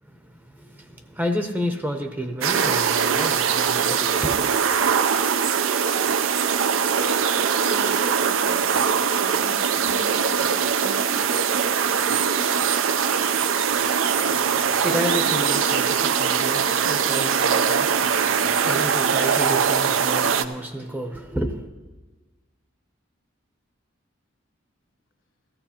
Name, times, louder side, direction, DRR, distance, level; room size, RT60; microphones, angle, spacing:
voice 1, 0.0-4.5 14.2-21.7, equal, 10° right, 0.6 m, -31 dB
sound 1, 2.4-20.4, right 7 dB, 85° right, 0.5 m, -22 dB
voice 2, 7.5-11.3, left 2 dB, 70° left, 1.3 m, -41 dB
15.5 x 14.5 x 2.9 m
head